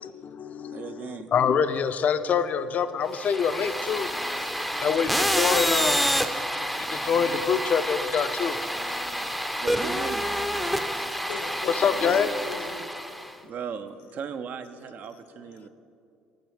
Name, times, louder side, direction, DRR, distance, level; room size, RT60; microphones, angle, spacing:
voice 1, 0.0-4.1 4.8-6.1 6.9-8.6 11.8-12.3, left 7 dB, 50° left, 12 dB, 0.4 m, -25 dB
voice 2, 0.7-1.3 9.6-10.2 13.4-15.7, right 6 dB, 55° right, 10 dB, 0.5 m, -37 dB
sound 1, 3.1-13.3, equal, ahead, 0.5 m, -28 dB
voice 3, 4.2-4.9 10.6-13.5 15.1-15.2, left 5 dB, 80° left, 6 dB, 0.8 m, -44 dB
7.9 x 6.1 x 4.9 m, 2.4 s
hypercardioid pair, 70°, 3 cm